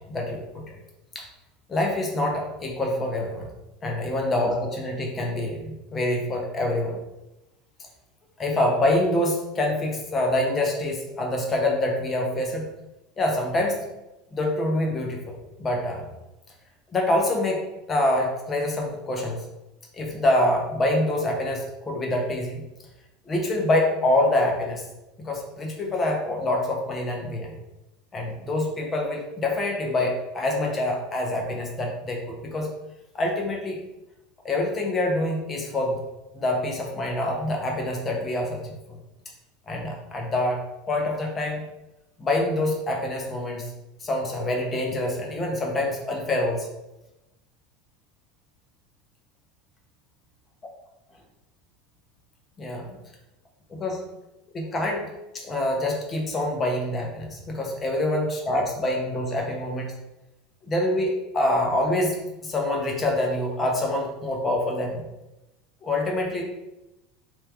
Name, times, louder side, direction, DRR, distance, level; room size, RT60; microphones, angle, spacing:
voice 1, 0.1-0.6 1.1-1.3 1.7-3.5 3.8-7.0 8.4-12.7 13.2-13.9 14.3-16.1 16.9-17.6 17.9-19.4 19.9-22.6 23.3-24.8 25.2-27.5 28.1-32.7 33.1-33.8 34.4-36.0 36.3-39.0 39.7-40.6 40.9-41.6 42.2-43.7 44.0-46.7 52.6-53.0 53.7-54.0 54.5-55.1 55.3-59.9 60.6-62.2 62.4-65.0 65.8-66.4, left 1 dB, 25° left, 0 dB, 0.9 m, -26 dB
3.4 x 2.9 x 3.4 m, 0.97 s
figure-of-eight pair, 75°, 0 cm